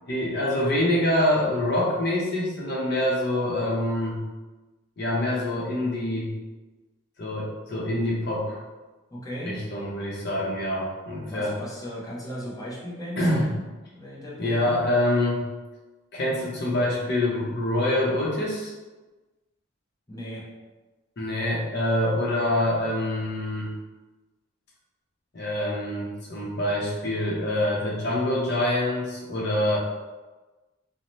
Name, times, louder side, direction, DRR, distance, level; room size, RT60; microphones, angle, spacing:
voice 1, 0.1-4.2 5.0-6.3 7.2-8.6 9.4-11.6 13.2-13.5 14.4-15.4 16.1-18.7 21.2-23.7 25.3-29.8, left 1 dB, 55° left, -4 dB, 0.7 m, -25 dB
voice 2, 9.1-9.6 11.3-13.6 13.9-14.8 20.1-20.4, equal, 20° left, -5 dB, 0.6 m, -36 dB
2.7 x 2.1 x 3.0 m, 1.2 s
head